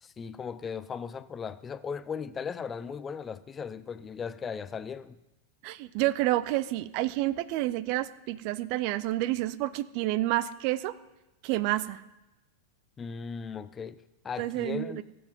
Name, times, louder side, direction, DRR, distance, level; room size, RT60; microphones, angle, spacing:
voice 1, 0.0-5.2 13.0-15.0, left 6 dB, 20° left, 0.5 m, -37 dB
voice 2, 5.6-11.0 11.4-12.0 14.4-15.0, right 16 dB, 45° right, 0.5 m, -29 dB
16.0 x 7.7 x 5.4 m
figure-of-eight pair, 90°, 0 cm